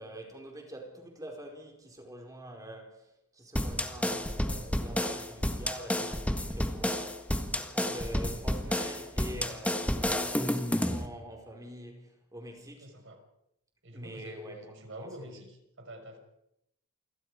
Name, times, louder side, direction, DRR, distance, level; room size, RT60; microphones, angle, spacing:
voice 1, 0.0-12.9 13.9-15.4, right 1 dB, 15° right, 4.8 m, -45 dB
sound 1, 3.5-11.1, left 1 dB, 5° left, 1.6 m, -31 dB
voice 2, 12.8-13.2 13.8-16.2, right 1 dB, 60° right, 5.9 m, -47 dB
29.0 x 25.5 x 5.0 m
head